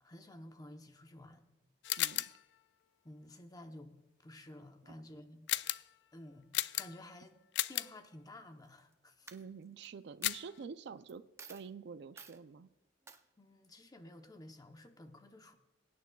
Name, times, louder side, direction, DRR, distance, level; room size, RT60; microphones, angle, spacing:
voice 1, 0.0-1.4 3.0-5.5 6.1-6.5 6.8-7.4 7.7-9.3 13.4-15.5, left 1 dB, 20° left, 6 dB, 0.8 m, -53 dB
sound 1, 1.8-2.4 5.5-5.9 6.5-7.1 7.5-8.0 10.2-10.6, left 15 dB, 65° left, 0.3 m, -35 dB
voice 2, 2.0-2.3 4.8-4.9 9.3-12.7, right 5 dB, 65° right, 13 dB, 0.4 m, -48 dB
Coin (dropping), 8.6-8.9 9.3-9.9 10.2-10.3 11.1-11.2 11.4-11.7 12.2-12.4 13.1-13.2, right 4 dB, 15° right, 0.5 m, -53 dB
22.5 x 9.4 x 2.3 m, 1.0 s
head